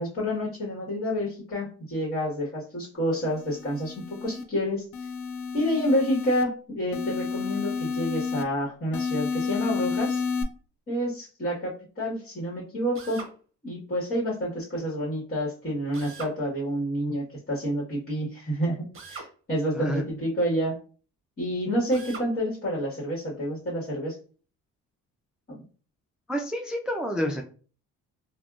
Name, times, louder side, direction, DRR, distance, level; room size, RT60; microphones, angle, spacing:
voice 1, 0.0-4.8 5.5-10.2 10.9-13.2 13.6-20.8 21.4-24.2 25.5-25.6, equal, 30° left, -5 dB, 1.3 m, -29 dB
sound 1, 3.3-4.4 4.9-6.4 6.9-8.4 8.9-10.4, left 5 dB, 50° left, 0.5 m, -31 dB
Drill, 12.9-13.4 15.9-16.4 18.9-19.3 21.9-22.3, right 4 dB, 45° right, 0.8 m, -41 dB
voice 2, 19.7-20.0 26.3-27.4, equal, 5° right, 2 dB, 0.4 m, -29 dB
3.5 x 2.2 x 2.4 m, 0.40 s
cardioid pair, 90°, 30 cm